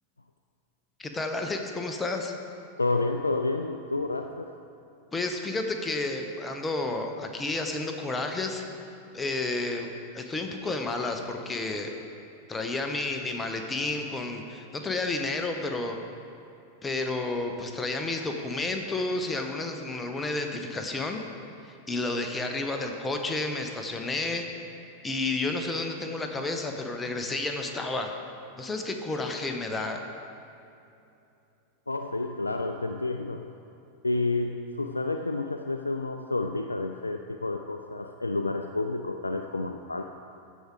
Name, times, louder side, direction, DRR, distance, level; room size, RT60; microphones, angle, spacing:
voice 1, 1.0-2.3 5.1-8.6 9.1-11.9 12.5-16.0 16.8-21.2 21.6-24.5 25.0-28.1 28.6-30.1, left 2 dB, 15° left, 4 dB, 0.9 m, -31 dB
voice 2, 2.8-4.5 31.9-33.5 34.0-40.0, left 2 dB, 80° left, 6 dB, 0.3 m, -30 dB
14.5 x 5.0 x 4.8 m, 2.7 s
figure-of-eight pair, 90°, 0 cm